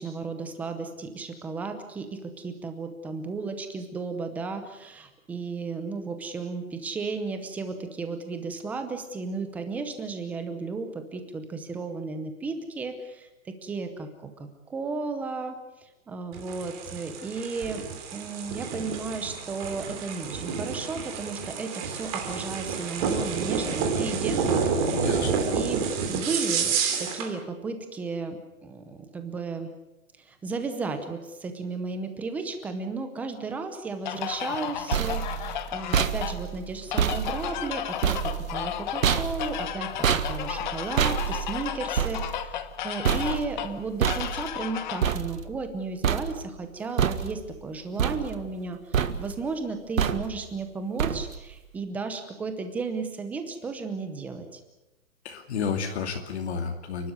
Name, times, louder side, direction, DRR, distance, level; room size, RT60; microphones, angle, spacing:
voice 1, 0.0-17.8 18.1-25.0 25.5-25.8 26.1-29.7 30.2-54.6, right 4 dB, 5° right, 8 dB, 0.7 m, -34 dB
sound 1, 16.3-27.3, right 5 dB, 25° right, 3.0 m, -29 dB
voice 2, 24.9-25.4 43.1-43.4 55.2-57.1, left 6 dB, 50° left, 5 dB, 2.7 m, -31 dB
sound 2, 34.0-45.1, left 11 dB, 35° left, 1.2 m, -34 dB
sound 3, 34.5-45.8 46.0-46.6 47.0-47.6 48.0-48.7 48.9-49.5 50.0-50.5 51.0-51.5, right 8 dB, 70° right, 1.7 m, -28 dB
30.0 x 12.5 x 9.5 m, 0.98 s
hypercardioid pair, 165°, 41 cm